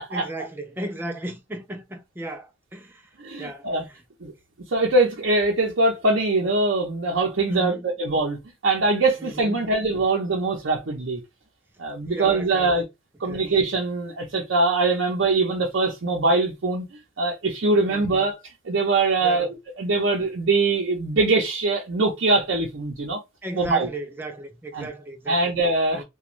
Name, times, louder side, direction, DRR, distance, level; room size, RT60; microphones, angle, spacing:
voice 1, 0.1-3.0 3.4-3.7 7.5-7.9 9.2-9.7 12.1-12.7 13.2-13.5 17.9-18.2 19.2-19.5 23.4-25.4 25.9-26.0, right 1 dB, 10° right, 0.4 m, -35 dB
voice 2, 3.2-3.9 4.2-4.3 4.7-8.4 8.6-11.2 11.8-12.8 13.2-16.9 17.2-18.4 18.6-19.5 19.8-23.2 23.5-23.9 24.7-24.9 25.3-26.0, right 3 dB, 65° right, 0.6 m, -22 dB
3.0 x 2.3 x 2.5 m
head